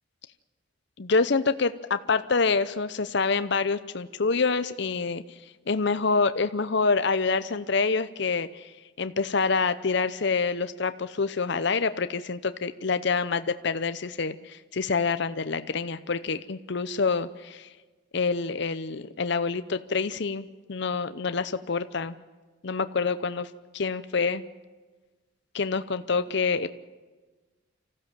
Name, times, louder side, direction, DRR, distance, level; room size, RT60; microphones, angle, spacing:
voice 1, 1.0-5.2 5.7-17.7 18.1-22.1 22.6-23.5 23.7-24.4 25.5-26.7, left 4 dB, 55° left, 12 dB, 0.7 m, -27 dB
25.5 x 15.5 x 7.4 m, 1.3 s
head